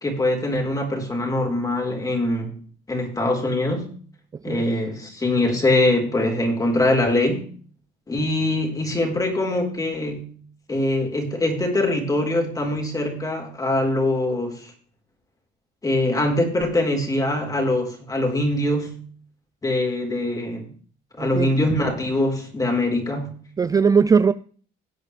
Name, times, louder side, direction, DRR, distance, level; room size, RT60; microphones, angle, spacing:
voice 1, 0.0-2.6 2.9-3.9 4.4-7.5 8.1-10.3 10.7-14.7 15.8-19.0 19.6-20.7 21.2-23.3, left 1 dB, 20° left, 4.1 m, -23 dB
voice 2, 21.2-21.5 23.6-24.3, right 5 dB, 20° right, 0.4 m, -19 dB
17.0 x 8.4 x 3.3 m
cardioid pair, 110°, 17 cm